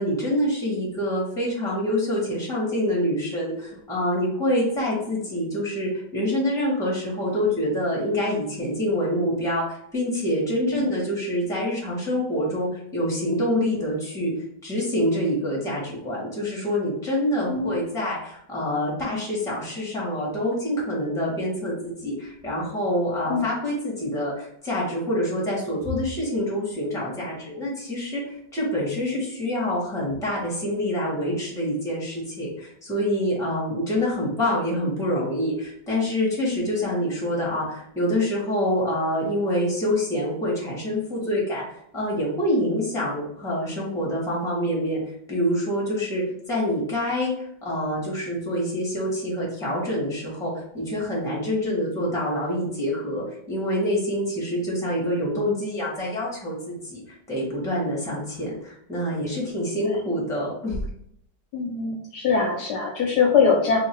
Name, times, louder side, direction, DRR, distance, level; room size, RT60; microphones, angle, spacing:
voice 1, 0.0-14.3 14.6-60.8, equal, ahead, -5 dB, 1.1 m, -26 dB
voice 2, 61.5-63.8, left 5 dB, 70° left, -1 dB, 1.1 m, -22 dB
2.9 x 2.8 x 4.4 m, 0.70 s
omnidirectional pair, 2.1 m